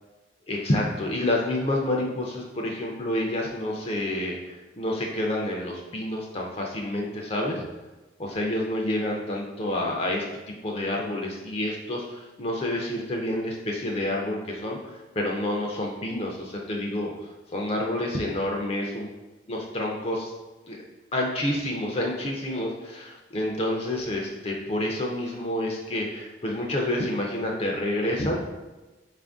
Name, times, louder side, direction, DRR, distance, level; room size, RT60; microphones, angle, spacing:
voice 1, 0.5-7.6 8.2-10.2 10.6-17.1 17.5-19.1 19.5-20.3 20.7-20.8 21.1-28.4, left 1 dB, 30° left, 0 dB, 0.4 m, -28 dB
4.2 x 2.5 x 3.5 m, 1.1 s
head